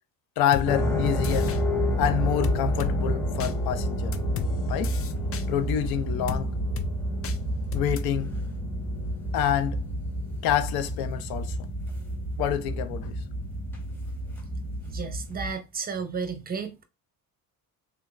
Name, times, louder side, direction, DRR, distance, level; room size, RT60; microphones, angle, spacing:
voice 1, 0.4-1.5 2.0-4.2 4.7-5.0 5.5-6.5 7.7-8.4 9.3-9.8 10.4-11.6 12.4-13.2, left 10 dB, 85° left, 0.6 m, -27 dB
sound 1, 0.5-0.7 1.2-1.6 2.4-2.9 3.4-3.5 4.1-4.5 4.8-5.4 6.3-6.4 6.8-6.9 7.2-7.4 7.7-8.0, left 7 dB, 40° left, 0.5 m, -32 dB
sound 2, 0.6-15.5, equal, 5° left, 1.8 m, -29 dB
voice 2, 14.9-16.8, right 5 dB, 25° right, 0.7 m, -33 dB
3.3 x 3.1 x 2.4 m
cardioid pair, 125°, 35 cm